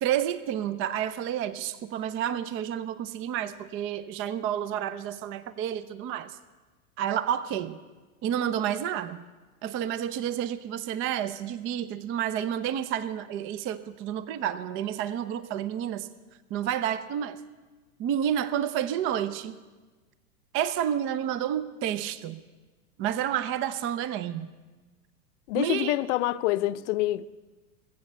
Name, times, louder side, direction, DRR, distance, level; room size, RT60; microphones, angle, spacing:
voice 1, 0.0-6.4 7.0-7.8 8.2-9.2 9.6-16.1 16.5-17.4 18.0-19.5 20.5-22.4 23.0-24.5 25.6-26.0, right 10 dB, 30° right, 0.6 m, -30 dB
voice 2, 25.5-27.2, left 16 dB, 55° left, 0.7 m, -26 dB
21.5 x 8.1 x 6.6 m
hypercardioid pair, 110°, 45 cm